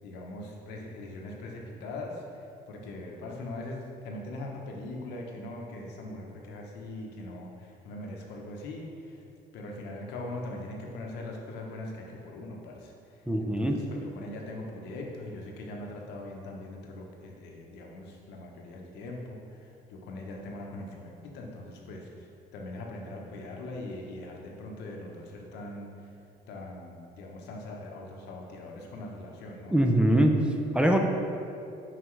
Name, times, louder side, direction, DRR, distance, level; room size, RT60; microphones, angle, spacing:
voice 1, 0.0-9.2 9.5-22.3 22.5-25.9 26.5-29.8, left 2 dB, 90° left, 0 dB, 0.9 m, -41 dB
voice 2, 13.3-13.9 29.7-31.0, right 1 dB, 5° right, 3 dB, 0.4 m, -23 dB
5.8 x 5.6 x 3.2 m, 2.5 s
cardioid pair, 110°, 17 cm